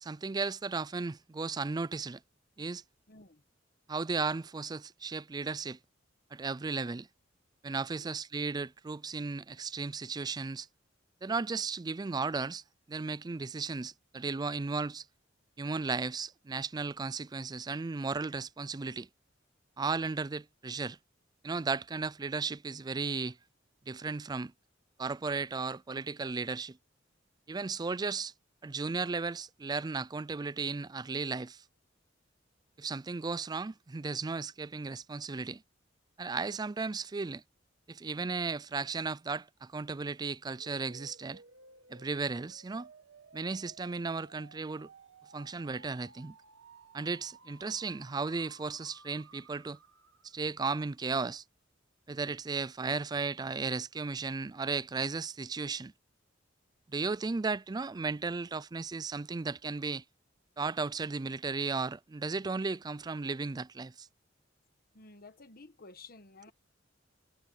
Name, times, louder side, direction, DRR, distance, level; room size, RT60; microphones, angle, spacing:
voice 1, 0.0-2.2 2.6-2.8 3.9-5.8 6.3-7.1 7.6-10.7 11.2-12.6 12.9-15.1 15.6-19.1 19.8-21.0 21.4-23.4 23.9-24.5 25.0-26.8 27.5-28.3 28.6-31.6 32.8-35.6 36.2-37.4 37.9-41.4 41.9-42.9 43.3-44.9 45.3-46.4 46.9-49.8 50.2-51.4 52.1-55.9 56.9-60.0 60.6-64.1, right 4 dB, 20° right, 0.4 m, -35 dB
voice 2, 3.1-3.4 8.0-8.2 64.9-66.5, left 3 dB, 50° left, 1.4 m, -53 dB
sound 1, 40.5-50.4, right 4 dB, 75° right, 1.6 m, -57 dB
head